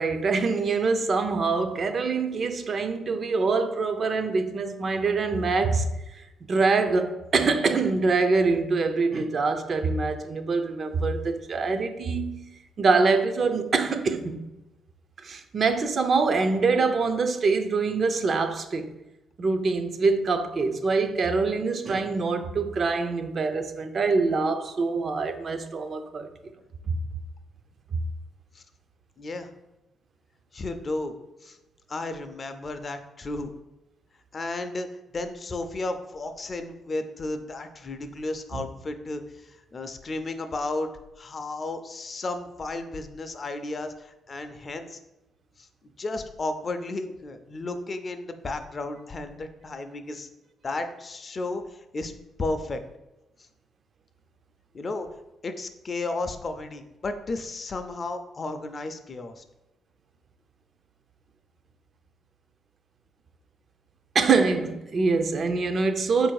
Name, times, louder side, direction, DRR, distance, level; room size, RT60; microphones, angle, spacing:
voice 1, 0.0-12.4 12.8-14.4 15.2-18.9 19.4-26.3 26.9-27.0 27.9-28.0 38.5-38.6 64.1-66.3, right 4 dB, 45° right, 0.4 m, -24 dB
voice 2, 29.2-29.5 30.5-31.2 31.4-31.6 31.9-33.5 34.3-34.9 35.1-40.9 41.2-45.0 45.6-45.7 46.0-50.3 50.6-52.1 52.4-52.8 54.7-55.1 55.4-59.4, left 2 dB, 35° left, 0.4 m, -33 dB
4.1 x 2.6 x 4.6 m
cardioid pair, 90°, 0 cm